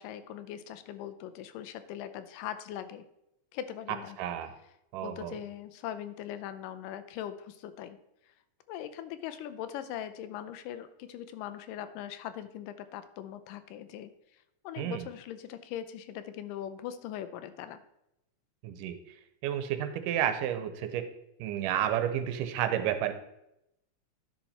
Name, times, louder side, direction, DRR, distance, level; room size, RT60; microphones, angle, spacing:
voice 1, 0.0-3.0 3.5-4.2 5.0-8.0 8.3-8.4 8.7-14.1 14.6-17.8, left 10 dB, 85° left, 11 dB, 2.3 m, -40 dB
voice 2, 4.2-4.5 4.9-5.3 14.8-15.1 18.6-19.0 19.4-21.0 21.4-23.1, right 10 dB, 80° right, 9 dB, 2.3 m, -31 dB
11.0 x 5.9 x 4.2 m, 0.83 s
omnidirectional pair, 3.8 m